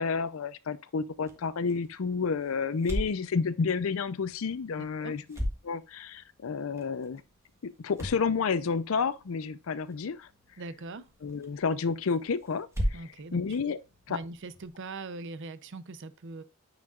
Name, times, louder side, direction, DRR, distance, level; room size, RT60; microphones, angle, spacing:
voice 1, 0.0-5.4 5.6-7.2 7.6-10.3 11.2-13.0 13.3-13.8 14.1-14.2, left 5 dB, 70° left, 0.5 m, -30 dB
sound 1, 1.1-14.7, equal, 15° right, 1.5 m, -40 dB
voice 2, 4.8-5.2 10.6-11.1 12.9-13.4 14.1-16.4, right 3 dB, 60° right, 0.6 m, -41 dB
9.3 x 4.9 x 2.3 m
head